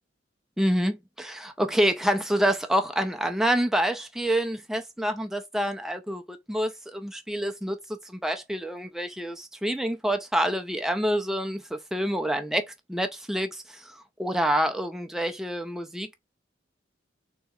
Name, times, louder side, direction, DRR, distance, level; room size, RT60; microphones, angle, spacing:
voice 1, 0.6-7.8 8.1-12.6 12.9-16.1, equal, 5° right, 0.3 m, -27 dB
4.0 x 2.8 x 2.3 m
head